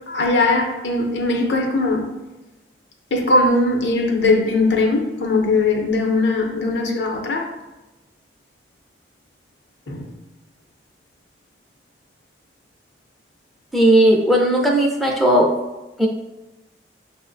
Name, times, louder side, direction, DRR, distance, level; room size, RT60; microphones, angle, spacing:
voice 1, 0.1-2.1 3.1-7.5 9.9-10.1, left 2 dB, 85° left, 2 dB, 0.6 m, -20 dB
voice 2, 13.7-15.5 16.0-16.1, right 1 dB, ahead, -1 dB, 0.4 m, -16 dB
6.1 x 2.1 x 2.5 m, 1.1 s
head